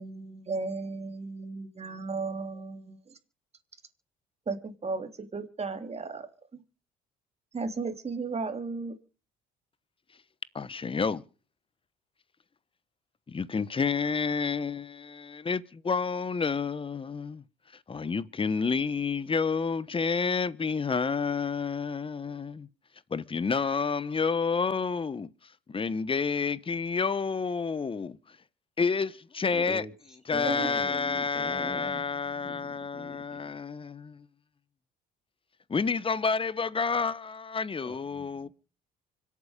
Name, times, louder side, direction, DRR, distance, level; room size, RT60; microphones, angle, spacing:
voice 1, 0.0-3.2 4.5-6.3 6.5-6.6 7.5-8.9 30.4-30.7, right 4 dB, 30° right, 3.1 m, -35 dB
voice 2, 10.5-11.2 13.3-17.4 17.9-22.7 23.1-25.3 25.7-28.2 28.8-29.8 30.3-34.3 35.7-38.5, left 5 dB, 25° left, 1.0 m, -29 dB
voice 3, 29.5-33.4 37.8-38.5, equal, 5° right, 2.7 m, -43 dB
25.5 x 8.5 x 5.1 m
supercardioid pair, 70°, 20 cm